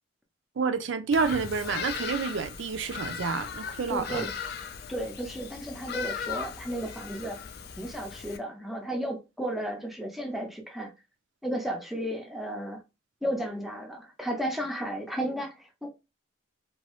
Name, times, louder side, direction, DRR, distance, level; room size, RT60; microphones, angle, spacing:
voice 1, 0.6-4.3, right 5 dB, 65° right, 0.4 m, -29 dB
Bird vocalization bird call bird song, 1.1-8.4, left 6 dB, 55° left, 0.4 m, -38 dB
voice 2, 3.9-4.3 4.9-7.4 7.8-10.9 11.4-12.8 13.2-15.9, right 1 dB, ahead, 0.5 m, -33 dB
2.9 x 2.3 x 3.0 m
head